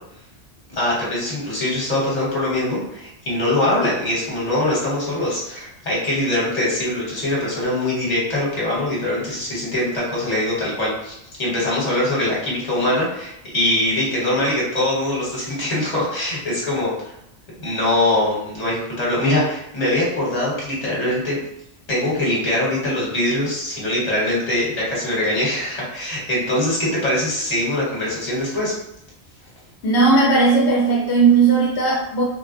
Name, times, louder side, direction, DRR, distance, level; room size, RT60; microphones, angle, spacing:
voice 1, 0.7-17.1 17.6-21.4 21.9-28.7, left 1 dB, 35° left, -6 dB, 1.2 m, -22 dB
voice 2, 29.8-32.2, right 4 dB, 75° left, -3 dB, 0.9 m, -16 dB
3.5 x 2.1 x 2.5 m, 0.79 s
omnidirectional pair, 1.1 m